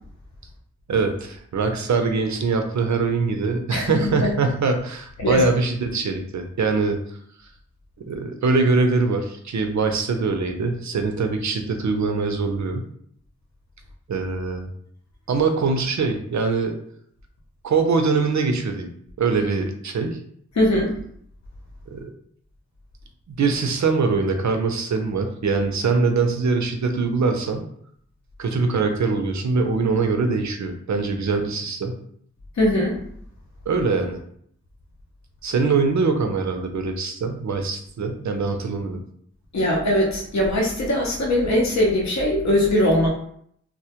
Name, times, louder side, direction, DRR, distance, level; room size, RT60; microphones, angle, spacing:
voice 1, 0.9-7.0 8.1-12.9 14.1-14.7 15.3-16.8 17.6-18.9 19.2-20.2 21.9-22.1 23.3-27.7 28.4-32.0 33.7-34.2 35.4-39.0, right 4 dB, 70° right, 5 dB, 0.4 m, -23 dB
voice 2, 3.7-4.3 5.2-5.4 20.6-20.9 32.6-33.0 39.5-43.1, left 1 dB, 70° left, -2 dB, 0.6 m, -21 dB
2.1 x 2.1 x 2.7 m, 0.66 s
wide cardioid pair, 40°, 29 cm